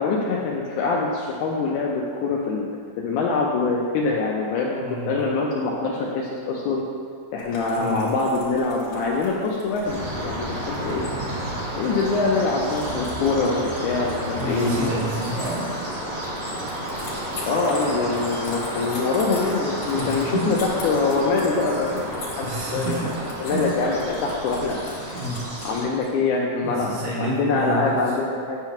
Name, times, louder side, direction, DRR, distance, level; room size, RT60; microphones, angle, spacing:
voice 1, 0.0-2.7 3.0-6.8 7.3-11.1 11.8-14.9 17.4-23.0 23.4-25.0 25.6-28.6, left 3 dB, 80° left, -2 dB, 1.8 m, -24 dB
voice 2, 4.8-5.1 7.7-8.1 14.4-15.7 19.9-20.5 22.4-23.8 25.1-25.5 26.6-28.1, right 2 dB, 75° right, -7 dB, 3.1 m, -29 dB
sound 1, 7.4-26.1, left 3 dB, 60° left, 2.1 m, -42 dB
sound 2, 9.8-25.8, right 1 dB, 50° right, 1.7 m, -31 dB
sound 3, 16.8-21.9, left 2 dB, 45° left, 0.7 m, -42 dB
8.6 x 3.0 x 5.8 m, 2.2 s
omnidirectional pair, 4.0 m